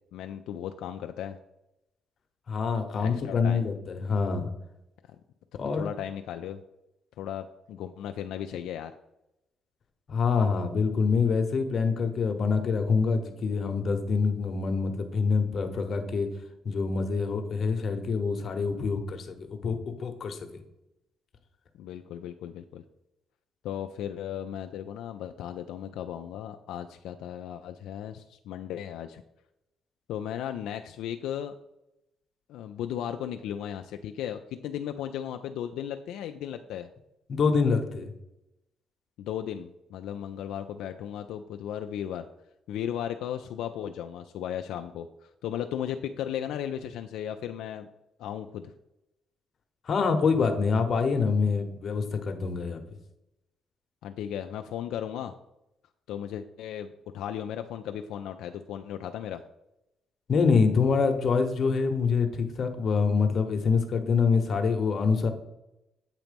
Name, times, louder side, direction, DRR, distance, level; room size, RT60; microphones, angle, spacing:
voice 1, 0.1-1.4 3.0-3.6 5.7-6.6 7.2-8.9 21.8-22.8 23.6-29.2 30.1-31.5 32.5-36.9 39.2-42.3 42.7-47.9 48.2-48.7 54.0-55.3 56.1-59.4, left 10 dB, 85° left, 6 dB, 0.3 m, -36 dB
voice 2, 2.5-4.5 5.6-5.9 10.1-16.3 16.6-20.4 37.3-38.1 49.9-52.8 60.3-65.3, left 5 dB, 50° left, 6 dB, 0.9 m, -26 dB
8.2 x 3.0 x 5.1 m, 0.89 s
cardioid pair, 90°, 0 cm